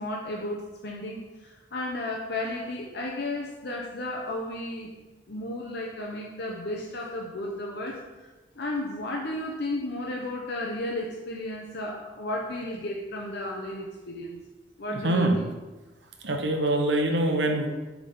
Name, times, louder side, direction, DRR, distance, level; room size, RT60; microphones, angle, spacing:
voice 1, 0.0-4.9 5.3-8.3 8.6-14.4 14.8-15.5, left 1 dB, 65° left, 0 dB, 0.7 m, -33 dB
voice 2, 14.9-15.4 16.2-17.7, right 1 dB, 75° right, 3 dB, 0.9 m, -24 dB
7.9 x 3.6 x 3.9 m, 1.2 s
head